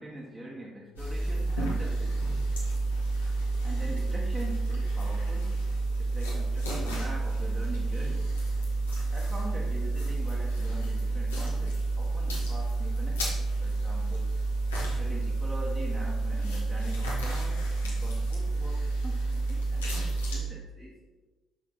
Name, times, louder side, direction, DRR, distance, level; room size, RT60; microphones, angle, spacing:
voice 1, 0.0-2.3 3.6-5.7 6.0-8.3 9.1-14.3 15.0-20.9, right 1 dB, 20° right, -5 dB, 1.3 m, -43 dB
sound 1, 1.0-20.4, right 2 dB, 85° left, 1.3 m, -29 dB
5.9 x 5.0 x 4.5 m, 1.1 s
figure-of-eight pair, 50°, 0 cm